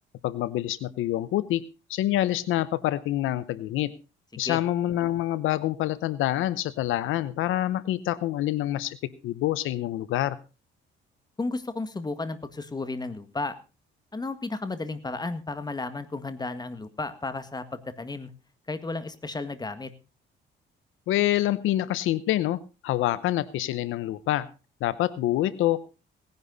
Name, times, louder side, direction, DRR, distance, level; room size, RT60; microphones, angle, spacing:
voice 1, 0.2-1.6 1.9-3.9 4.4-9.0 9.2-10.4 21.1-24.5 24.8-25.8, left 14 dB, 90° left, 16 dB, 0.8 m, -26 dB
voice 2, 11.4-13.6 14.1-18.3 18.7-19.9, left 3 dB, 20° left, 10 dB, 1.8 m, -33 dB
18.5 x 10.5 x 4.0 m, 0.31 s
cardioid pair, 90°, 20 cm